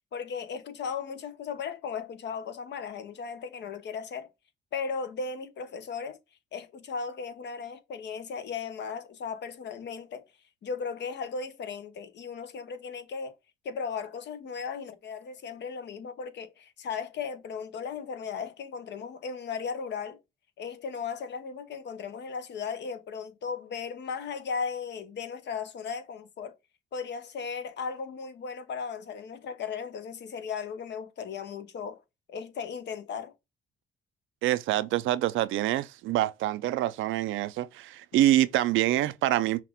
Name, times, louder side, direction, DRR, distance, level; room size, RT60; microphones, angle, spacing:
voice 1, 0.1-4.3 4.7-6.2 6.5-10.2 10.6-13.4 13.6-20.2 20.6-26.6 26.9-32.0 32.3-33.3, left 6 dB, 60° left, 0.8 m, -36 dB
voice 2, 34.4-39.6, right 14 dB, 80° right, 0.4 m, -26 dB
5.8 x 2.4 x 3.5 m
cardioid pair, 90°, 20 cm